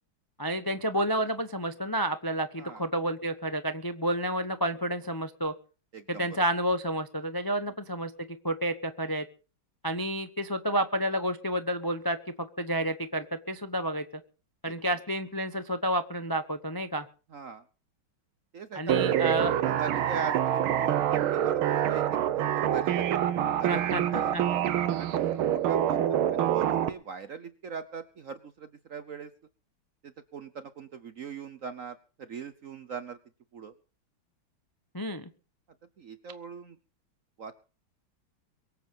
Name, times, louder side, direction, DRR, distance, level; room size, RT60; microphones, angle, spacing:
voice 1, 0.4-5.5 6.1-8.1 8.4-9.2 9.8-14.0 14.6-17.1 18.7-19.6 23.7-24.4 34.9-35.3, right 1 dB, 25° left, 9 dB, 0.5 m, -30 dB
voice 2, 5.9-6.3 14.7-14.8 17.3-17.6 18.5-19.0 19.6-23.0 23.6-24.3 25.0-26.1 26.3-29.3 30.0-33.2 33.5-33.7 36.0-36.8 37.4-37.6, right 6 dB, 55° right, 12 dB, 0.9 m, -40 dB
sound 1, 18.9-26.9, right 10 dB, 85° right, 1.8 m, -26 dB
23.5 x 8.3 x 5.4 m, 0.37 s
omnidirectional pair, 2.2 m